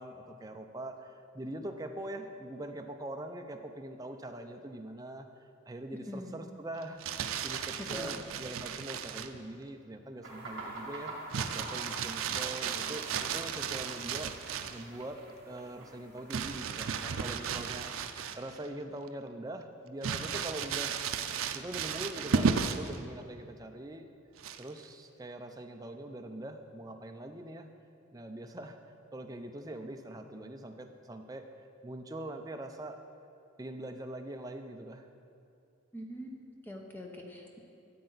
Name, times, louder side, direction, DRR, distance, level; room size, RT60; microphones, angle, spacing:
voice 1, 0.0-14.3 14.7-15.2 15.5-21.0 21.5-24.1 24.6-27.7 28.1-28.8 29.1-31.4 31.8-33.0 33.6-35.1, right 1 dB, 15° right, 5 dB, 0.5 m, -43 dB
Crumpling crinkling, 6.8-9.4 11.3-14.9 16.3-18.7 19.1-19.2 20.0-23.0 24.4-24.8, right 6 dB, 80° right, 0.5 m, -34 dB
voice 2, 7.9-8.2 35.9-37.6, left 1 dB, 10° left, 1 dB, 0.8 m, -44 dB
sound 1, 10.2-17.7, right 2 dB, 55° right, 2.2 m, -47 dB
13.5 x 7.7 x 4.0 m, 2.5 s
head